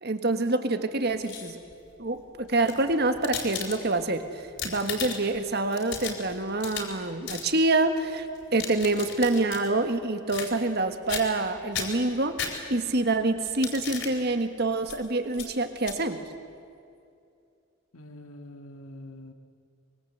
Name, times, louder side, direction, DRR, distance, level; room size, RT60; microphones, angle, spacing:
voice 1, 0.0-1.6 2.0-8.3 8.5-16.2, right 2 dB, 50° right, 8 dB, 1.6 m, -26 dB
sound 1, 1.0-1.7 2.5-4.1 4.4-5.4 5.7-7.0 7.3-7.5 8.3-9.7 10.3-10.8 11.1-11.5 11.7-13.0 13.4-14.1 14.8-15.0 15.3-15.5 15.8-16.0, left 6 dB, 60° left, 4.1 m, -36 dB
voice 2, 17.9-19.3, left 1 dB, 80° left, 6 dB, 1.9 m, -45 dB
24.0 x 23.0 x 8.0 m, 2.4 s
head